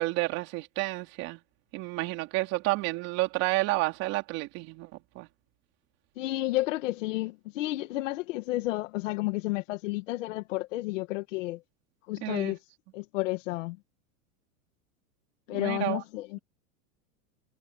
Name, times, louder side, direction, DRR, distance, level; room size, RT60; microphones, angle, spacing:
voice 1, 0.0-1.4 1.7-4.9 5.2-5.3 12.2-12.6 15.5-16.0, right 21 dB, 35° right, 3.5 m, -30 dB
voice 2, 6.2-11.6 12.1-12.6 12.9-13.8 15.5-16.4, left 18 dB, 55° left, 1.9 m, -31 dB
supercardioid pair, 175°, 46 cm